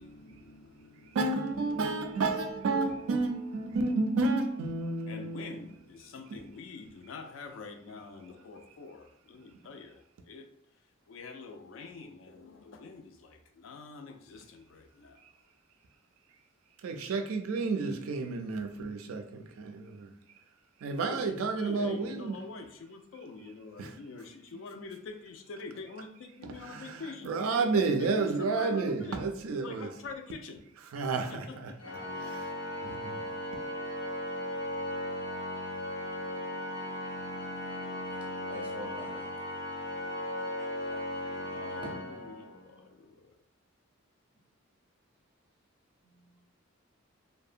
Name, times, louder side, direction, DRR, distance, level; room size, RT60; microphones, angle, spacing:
voice 1, 0.0-1.2 1.7-2.2 5.1-10.5 11.1-15.3 21.0-29.2 29.5-30.6 31.1-32.0 41.3-43.4, left 4 dB, 65° left, 0.3 m, -46 dB
voice 2, 1.1-5.6 16.8-20.1 20.8-22.4 23.8-23.9 26.6-29.9 30.9-31.7 32.3-32.5 32.8-33.2, right 3 dB, 85° right, 0.4 m, -31 dB
Organ, 31.8-42.8, left 1 dB, 85° left, 1.0 m, -37 dB
voice 3, 38.5-39.3 40.6-41.4 41.8-41.9 46.0-46.4, equal, 5° right, 0.5 m, -47 dB
2.7 x 2.1 x 2.4 m
head